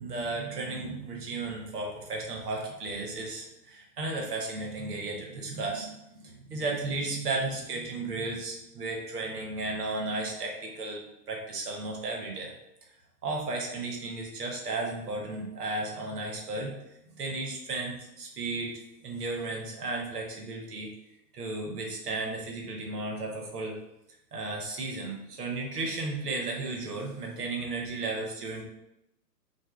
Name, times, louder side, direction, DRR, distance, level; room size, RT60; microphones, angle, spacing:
voice 1, 0.0-12.5 13.2-16.8 17.1-18.7 19.0-20.9 21.3-23.8 24.3-28.6, right 3 dB, 70° right, 0 dB, 0.9 m, -34 dB
2.3 x 2.1 x 3.1 m, 0.85 s
figure-of-eight pair, 115°, 48 cm